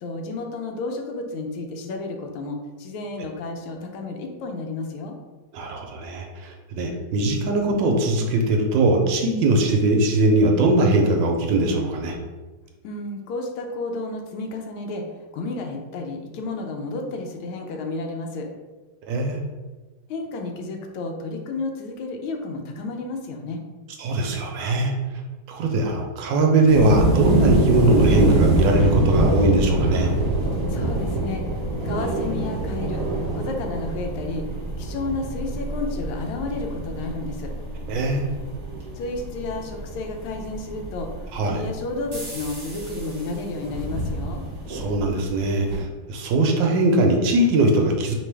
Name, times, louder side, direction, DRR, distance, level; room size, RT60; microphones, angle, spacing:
voice 1, 0.0-5.2 12.8-15.0 15.3-18.5 20.1-23.6 30.7-31.4 31.8-33.0 33.3-34.5 34.8-37.5 38.9-41.1 41.4-44.4, left 3 dB, 85° left, 3 dB, 1.5 m, -31 dB
voice 2, 5.5-12.2 19.1-19.4 24.0-24.9 25.5-30.1 37.9-38.3 41.3-41.6 44.7-48.2, right 2 dB, 70° right, 2 dB, 1.2 m, -21 dB
sound 1, 26.7-45.8, right 1 dB, 40° right, 0.5 m, -25 dB
4.3 x 3.2 x 3.3 m, 1.2 s
omnidirectional pair, 2.3 m